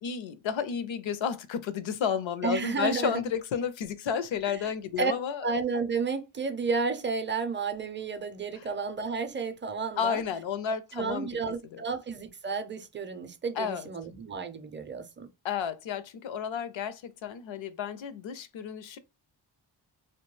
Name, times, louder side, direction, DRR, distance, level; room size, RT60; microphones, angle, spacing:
voice 1, 0.0-5.5 8.6-8.7 10.0-11.3 11.7-11.8 13.6-13.9 15.4-19.0, left 7 dB, 70° left, 0.5 m, -32 dB
voice 2, 2.4-3.2 4.5-4.7 5.0-5.1 5.4-10.2 10.9-15.3, right 5 dB, 25° right, 0.5 m, -32 dB
2.3 x 2.2 x 3.1 m
cardioid pair, 45°, 48 cm